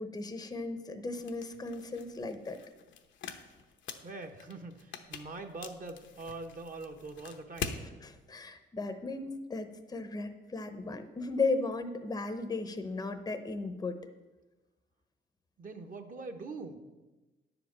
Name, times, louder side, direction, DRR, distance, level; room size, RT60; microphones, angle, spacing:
voice 1, 0.0-2.6 8.0-14.0, left 3 dB, 20° left, 8 dB, 0.8 m, -36 dB
sound 1, 1.2-7.8, left 6 dB, 70° left, 0.9 m, -44 dB
voice 2, 4.0-7.8 15.6-16.8, right 3 dB, 45° right, 5 dB, 1.2 m, -43 dB
9.9 x 5.1 x 7.4 m, 1.2 s
cardioid pair, 90°, 20 cm